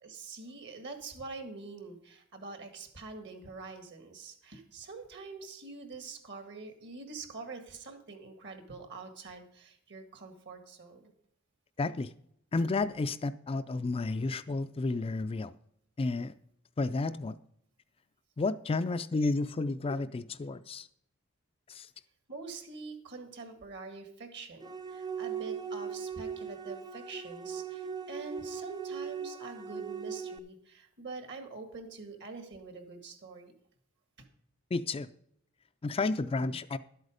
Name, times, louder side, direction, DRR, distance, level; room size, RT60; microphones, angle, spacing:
voice 1, 0.0-11.1 22.3-33.5, right 4 dB, 55° right, 1.8 m, -45 dB
voice 2, 11.8-12.1 12.5-15.5 16.0-16.3 16.8-17.4 18.4-20.9 21.7-21.9 34.7-35.1 35.8-36.8, left 3 dB, 25° left, 0.4 m, -31 dB
sound 1, 24.6-30.4, right 6 dB, 20° right, 0.6 m, -39 dB
11.5 x 8.1 x 5.0 m
head